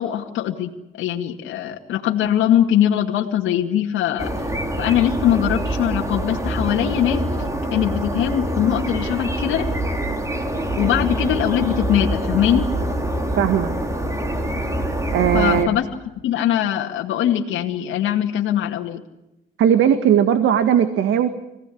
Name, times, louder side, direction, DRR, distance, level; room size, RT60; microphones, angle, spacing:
voice 1, 0.0-4.4 4.8-7.3 7.7-9.7 10.8-12.7 15.3-15.9 16.2-19.0, left 10 dB, 85° left, 1 dB, 2.2 m, -21 dB
sound 1, 4.2-15.6, right 1 dB, 15° right, 4.1 m, -25 dB
voice 2, 13.4-13.8 15.1-15.7 19.6-21.3, right 9 dB, 80° right, 9 dB, 2.0 m, -17 dB
26.5 x 18.0 x 8.6 m, 0.93 s
cardioid pair, 90°, 20 cm